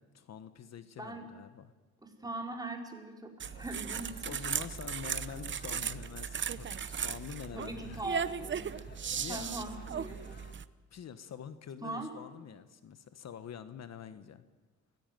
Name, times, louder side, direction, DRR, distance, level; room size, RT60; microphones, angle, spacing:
voice 1, 0.0-1.7 4.2-8.0 8.9-9.9 10.9-14.4, left 8 dB, 60° left, 11 dB, 1.3 m, -46 dB
voice 2, 1.0-1.4 2.0-4.3 7.5-8.7 9.3-10.4 11.8-12.1, right 2 dB, 15° right, 1 dB, 4.9 m, -41 dB
sound 1, 3.4-10.5, left 3 dB, 30° left, 2.4 m, -56 dB
sound 2, 3.4-10.6, right 7 dB, 40° right, 0.9 m, -37 dB
24.0 x 18.5 x 9.3 m, 1.2 s
cardioid pair, 90°, 30 cm